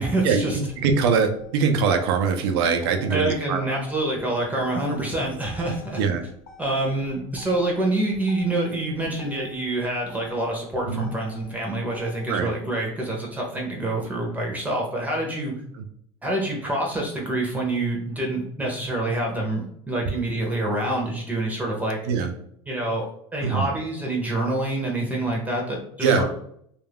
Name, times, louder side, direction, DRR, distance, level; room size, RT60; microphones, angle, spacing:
voice 1, 0.0-0.6 3.1-6.0 6.6-15.5 16.2-22.0 22.7-26.2, right 1 dB, 10° right, -2 dB, 0.6 m, -26 dB
Motor vehicle (road), 0.6-12.6, left 6 dB, 80° left, 0.8 m, -49 dB
voice 2, 0.8-3.6 6.0-6.2 10.9-11.1 12.3-12.5 22.1-22.3 23.4-23.7 26.0-26.2, right 5 dB, 85° right, 7 dB, 0.5 m, -22 dB
2.4 x 2.2 x 3.4 m, 0.68 s
supercardioid pair, 125°, 13 cm